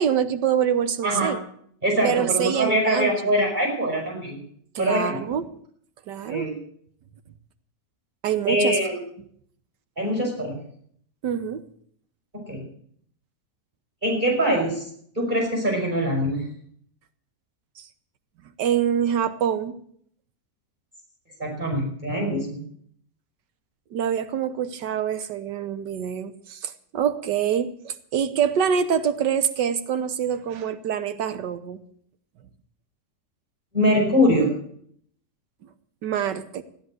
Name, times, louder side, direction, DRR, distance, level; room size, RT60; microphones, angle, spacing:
voice 1, 0.0-1.4 2.0-3.2 4.7-5.5 6.1-6.5 8.2-8.8 11.2-11.6 18.6-19.8 23.9-31.8 36.0-36.6, right 8 dB, 90° right, 11 dB, 1.6 m, -25 dB
voice 2, 1.0-1.3 1.8-4.4 4.8-5.2 6.3-6.6 8.5-9.0 10.0-10.6 12.4-12.6 14.0-14.8 15.1-16.5 21.4-22.6 33.7-34.5, equal, 25° right, 0 dB, 6.0 m, -23 dB
16.0 x 10.0 x 7.8 m, 0.63 s
omnidirectional pair, 1.8 m